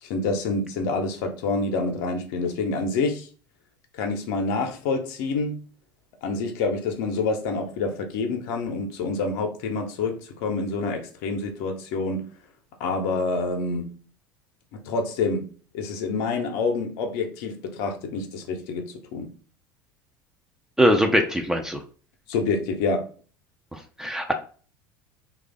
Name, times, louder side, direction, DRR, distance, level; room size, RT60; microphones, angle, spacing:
voice 1, 0.0-3.3 3.9-5.6 6.2-12.3 12.8-13.9 14.7-15.5 15.7-19.3 22.3-23.1, left 3 dB, 55° left, 0.7 m, -27 dB
voice 2, 20.8-21.8 23.7-24.3, equal, 5° right, 0.5 m, -22 dB
3.2 x 2.4 x 3.6 m
figure-of-eight pair, 70°, 11 cm